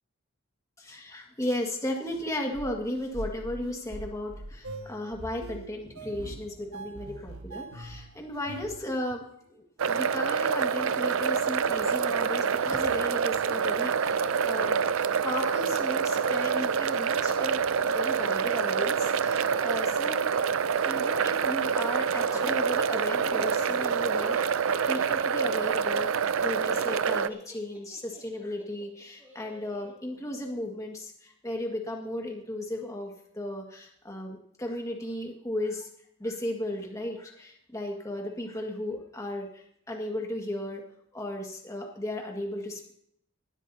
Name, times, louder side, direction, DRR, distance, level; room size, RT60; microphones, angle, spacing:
voice 1, 0.8-9.2 9.5-17.7 17.9-20.4 20.8-24.4 24.9-35.9 36.2-40.8 41.1-42.9, left 1 dB, 15° left, 1 dB, 1.8 m, -35 dB
sound 1, 2.5-8.8, right 1 dB, 85° right, 1.5 m, -42 dB
sound 2, 9.8-27.3, right 6 dB, 65° right, 0.5 m, -26 dB
Laughter, 14.3-16.6 16.9-29.9, equal, 10° right, 2.6 m, -46 dB
18.5 x 13.0 x 2.8 m, 0.70 s
head